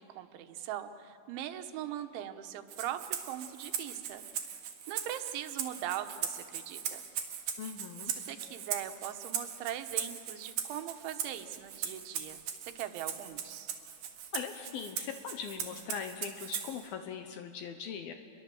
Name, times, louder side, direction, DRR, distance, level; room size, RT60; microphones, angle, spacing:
voice 1, 0.0-4.2 4.9-7.0 8.2-13.7, right 11 dB, 90° right, 8 dB, 3.5 m, -40 dB
Rattle (instrument), 2.7-16.9, right 8 dB, 65° right, 3.1 m, -39 dB
voice 2, 7.6-8.1 14.3-18.1, left 7 dB, 70° left, 7 dB, 2.5 m, -40 dB
28.5 x 22.5 x 7.7 m, 2.4 s
omnidirectional pair, 5.2 m